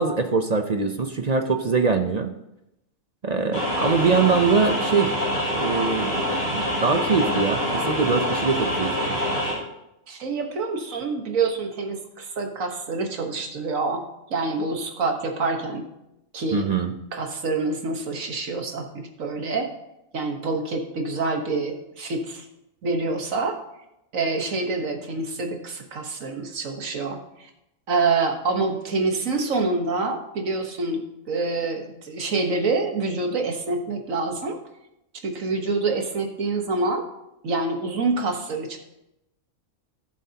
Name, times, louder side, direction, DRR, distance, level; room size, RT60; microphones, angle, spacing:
voice 1, 0.0-2.3 3.2-5.1 5.5-6.1 6.5-9.1 16.5-16.9, right 4 dB, 45° right, 6 dB, 0.5 m, -23 dB
sound 1, 3.5-9.5, equal, 45° left, 4.7 m, -25 dB
voice 2, 10.1-14.0 14.3-15.8 16.3-16.7 17.1-19.7 20.1-22.4 22.8-23.6 24.1-27.5 27.9-31.0 31.3-34.6 35.2-37.0 37.4-38.8, right 3 dB, 70° right, 4 dB, 1.7 m, -26 dB
17.5 x 7.3 x 2.9 m, 0.88 s
omnidirectional pair, 1.4 m